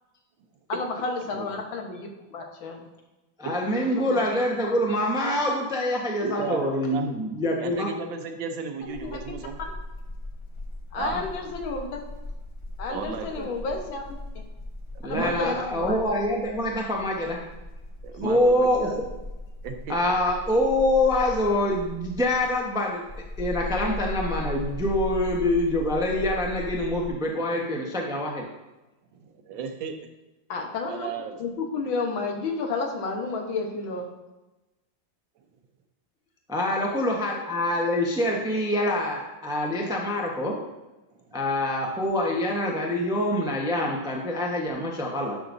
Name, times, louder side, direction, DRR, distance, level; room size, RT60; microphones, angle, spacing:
voice 1, 0.7-2.8 3.8-4.3 4.6-4.7 8.8-9.2 10.9-12.0 12.8-14.0 15.0-16.0 30.5-31.1 31.4-34.1, left 3 dB, 80° left, 2 dB, 1.9 m, -31 dB
voice 2, 3.4-7.9 15.0-17.4 18.2-18.9 19.9-23.0 23.4-28.4 36.5-40.6 41.3-45.3, left 1 dB, 5° right, -1 dB, 0.6 m, -25 dB
voice 3, 6.2-7.1 7.6-9.6 11.0-11.2 12.9-13.5 15.1-15.9 18.0-19.0 19.6-20.0 29.1-29.9 30.8-31.4 41.2-41.4, right 5 dB, 75° right, 6 dB, 1.5 m, -34 dB
sound 1, 8.8-27.1, left 1 dB, 20° left, 0.9 m, -38 dB
11.0 x 6.2 x 2.6 m, 1.0 s
omnidirectional pair, 2.1 m